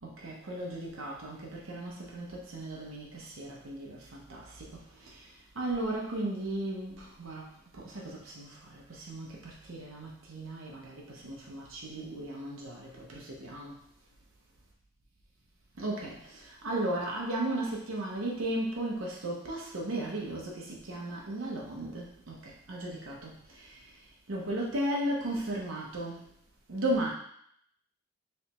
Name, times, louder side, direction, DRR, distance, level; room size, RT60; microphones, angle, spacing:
voice 1, 0.0-13.8 15.8-26.3 26.7-27.1, right 1 dB, 70° right, -3 dB, 0.8 m, -36 dB
3.4 x 3.2 x 3.0 m, 0.67 s
head